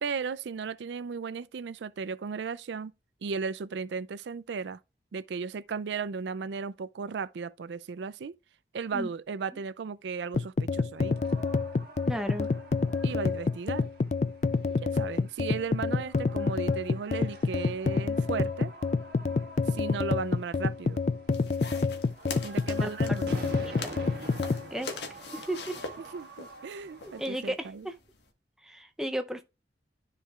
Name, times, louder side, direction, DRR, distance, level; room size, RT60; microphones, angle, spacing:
voice 1, 0.0-2.9 3.2-4.8 5.1-8.3 8.7-11.2 13.0-13.9 14.8-18.7 19.7-21.0 22.4-23.5 26.0-27.9, right 5 dB, 80° right, 0.4 m, -35 dB
sound 1, 10.3-24.6, left 4 dB, 40° left, 0.4 m, -28 dB
sound 2, 10.9-27.5, right 2 dB, 60° right, 1.6 m, -47 dB
voice 2, 12.1-12.5 22.8-22.9 23.8-23.9 24.7-24.9 25.3-25.8 27.0-27.9 28.6-29.4, right 1 dB, 5° right, 0.6 m, -34 dB
sound 3, 21.3-28.3, left 4 dB, 75° left, 1.5 m, -43 dB
13.0 x 4.6 x 2.4 m
head